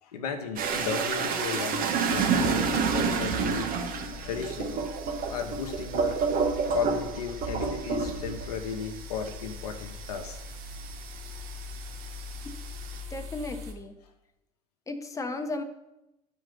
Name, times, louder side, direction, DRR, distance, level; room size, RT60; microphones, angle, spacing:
voice 1, 0.0-3.7 4.2-4.9 5.3-6.2 6.7-10.4 14.0-14.1, left 6 dB, 85° left, 5 dB, 1.0 m, -35 dB
sound 1, 0.6-11.5 11.9-13.0, right 5 dB, 50° right, 1.3 m, -29 dB
sound 2, 2.1-13.7, left 3 dB, 75° right, 1.5 m, -43 dB
voice 2, 13.1-13.9 14.9-15.6, left 2 dB, 15° left, 5 dB, 1.0 m, -34 dB
11.5 x 4.3 x 5.2 m, 0.90 s
hypercardioid pair, 80°, 19 cm